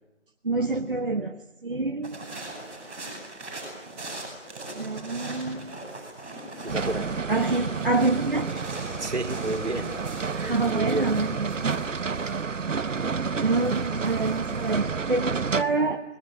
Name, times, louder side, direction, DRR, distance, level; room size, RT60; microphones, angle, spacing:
voice 1, 0.4-2.2 4.7-5.8 7.3-8.5 10.5-11.8 13.4-16.0, right 3 dB, 45° right, 3 dB, 1.2 m, -27 dB
sound 1, 2.0-14.7, right 2 dB, 10° right, 5.9 m, -40 dB
voice 2, 6.6-7.1 8.9-10.0 10.3-11.2, right 2 dB, 65° right, 4 dB, 3.7 m, -31 dB
sound 2, 6.7-15.6, right 5 dB, 80° right, 0.9 m, -30 dB
25.5 x 20.5 x 9.2 m, 1.0 s
figure-of-eight pair, 175°, 37 cm